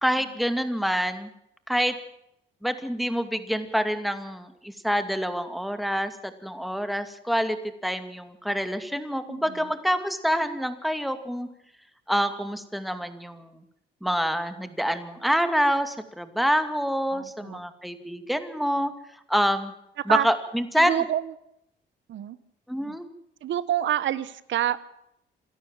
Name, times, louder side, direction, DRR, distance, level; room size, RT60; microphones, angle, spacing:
voice 1, 0.0-1.3 1.7-2.0 2.6-11.5 12.1-13.6 14.0-18.9 19.3-19.7 20.1-21.0 22.7-23.1, equal, ahead, 9 dB, 2.4 m, -26 dB
voice 2, 9.3-9.7 17.1-17.6 20.0-20.3 20.8-21.3 22.1-22.4 22.9-23.0 23.4-24.8, right 11 dB, 70° right, 16 dB, 1.3 m, -28 dB
27.5 x 13.0 x 7.5 m, 0.79 s
cardioid pair, 90°, 20 cm